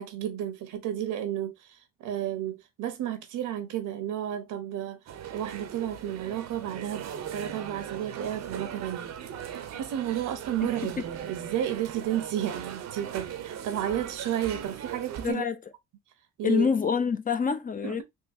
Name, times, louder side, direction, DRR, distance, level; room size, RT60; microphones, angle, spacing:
voice 1, 0.0-9.1 9.7-15.4 16.4-16.7 17.8-18.0, right 11 dB, 85° right, 0.9 m, -32 dB
sound 1, 5.1-15.3, right 9 dB, 60° right, 0.7 m, -39 dB
voice 2, 15.2-15.6 16.4-18.0, left 6 dB, 30° left, 0.5 m, -26 dB
3.7 x 2.5 x 2.6 m
cardioid pair, 90°, 30 cm